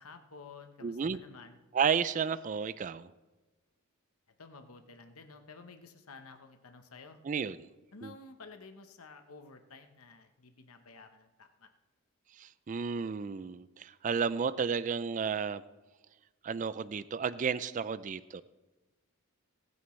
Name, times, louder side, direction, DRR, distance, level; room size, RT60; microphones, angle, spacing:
voice 1, 0.0-1.6 4.4-7.2 7.9-11.7, left 4 dB, 90° left, 7 dB, 1.0 m, -52 dB
voice 2, 0.8-1.2 1.7-3.1 7.2-7.7 8.0-8.1 12.3-15.6 16.4-18.4, right 6 dB, 35° right, 15 dB, 0.3 m, -32 dB
21.5 x 9.4 x 3.2 m, 1.2 s
head